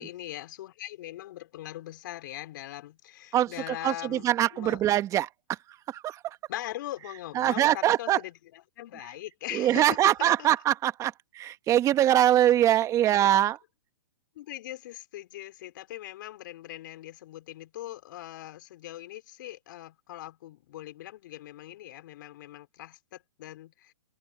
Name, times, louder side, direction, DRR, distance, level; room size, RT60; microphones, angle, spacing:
voice 1, 0.0-4.8 6.5-10.5 13.1-13.3 14.3-23.9, left 14 dB, 55° left, 5.0 m, -41 dB
voice 2, 3.3-5.3 5.9-6.4 7.3-8.2 9.5-13.6, right 12 dB, 25° right, 1.6 m, -23 dB
open air
hypercardioid pair, 125°, 12 cm